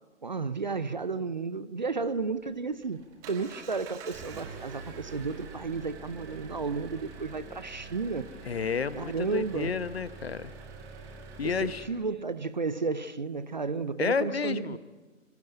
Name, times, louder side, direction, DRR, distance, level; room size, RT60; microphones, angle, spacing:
voice 1, 0.2-8.3 9.0-9.8 11.4-14.8, right 4 dB, 35° right, 15 dB, 0.6 m, -33 dB
Engine, 2.4-11.9, right 4 dB, 5° right, 0.9 m, -45 dB
voice 2, 8.4-10.5 11.4-11.8 14.0-14.8, left 5 dB, 50° left, 15 dB, 0.9 m, -31 dB
25.0 x 15.5 x 9.1 m, 1.4 s
figure-of-eight pair, 140°, 41 cm